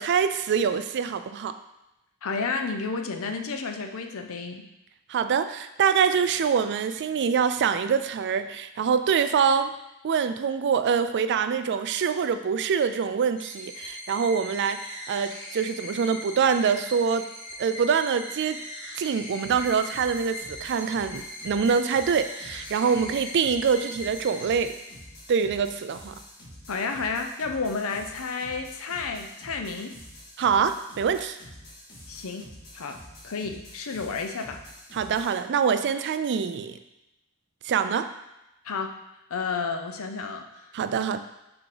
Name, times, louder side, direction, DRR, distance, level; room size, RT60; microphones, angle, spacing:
voice 1, 0.0-1.5 5.1-9.7 10.0-17.3 17.6-18.6 19.0-24.8 25.3-26.2 30.4-31.4 34.9-36.8 37.6-38.1 40.7-41.2, right 6 dB, 55° right, 10 dB, 0.4 m, -25 dB
voice 2, 2.2-4.6 26.7-29.9 32.1-32.5 32.7-34.6 38.6-38.9 39.3-40.7, left 4 dB, 65° left, 5 dB, 0.6 m, -31 dB
sound 1, 13.4-25.3, left 1 dB, 20° left, 2.2 m, -40 dB
sound 2, 19.4-35.4, equal, 45° left, 1.6 m, -47 dB
6.0 x 3.6 x 4.9 m, 0.93 s
head